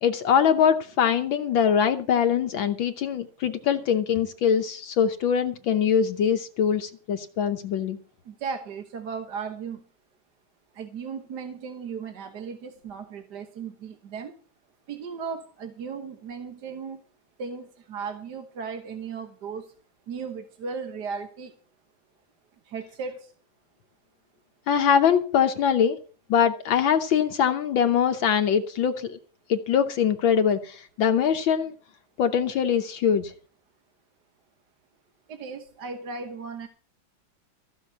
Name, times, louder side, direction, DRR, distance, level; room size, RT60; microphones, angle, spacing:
voice 1, 0.0-8.0 24.7-26.0 26.3-29.2 29.5-31.7 32.2-33.3, left 8 dB, 70° left, 1.5 m, -23 dB
voice 2, 8.3-9.8 10.7-14.3 14.9-17.0 17.4-19.7 20.1-21.5 22.7-23.3 35.3-36.7, right 5 dB, 55° right, 1.6 m, -36 dB
15.0 x 6.2 x 8.3 m
omnidirectional pair, 2.4 m